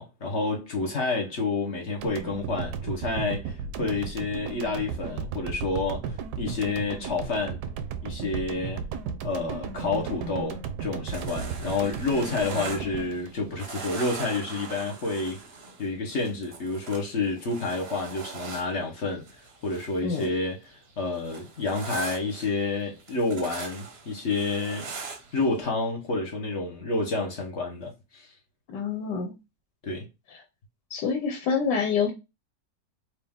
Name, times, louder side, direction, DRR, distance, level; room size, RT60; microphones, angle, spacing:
voice 1, 0.0-7.6 8.0-8.9 9.2-15.4 15.8-24.9 25.3-28.3 29.8-30.1, left 3 dB, 45° left, 1.2 m, -29 dB
sound 1, 2.0-14.2, right 6 dB, 75° right, 1.1 m, -35 dB
sound 2, 11.1-13.3 13.6-20.4 20.7-25.6, right 4 dB, 45° right, 0.9 m, -41 dB
voice 2, 28.7-29.3 30.9-32.1, left 5 dB, 85° left, 1.5 m, -27 dB
4.6 x 2.5 x 3.5 m
omnidirectional pair, 1.9 m